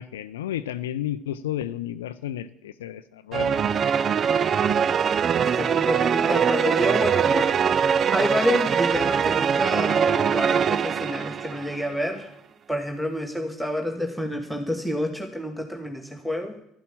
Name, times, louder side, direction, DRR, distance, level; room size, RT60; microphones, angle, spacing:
voice 1, 0.0-3.6, left 12 dB, 75° left, 13 dB, 0.4 m, -32 dB
sound 1, 3.3-11.9, right 7 dB, 40° right, 0.5 m, -22 dB
voice 2, 5.4-7.8 8.1-12.3 12.7-16.6, left 1 dB, ahead, 3 dB, 1.6 m, -28 dB
12.5 x 11.0 x 7.3 m, 0.76 s
figure-of-eight pair, 60°, 0 cm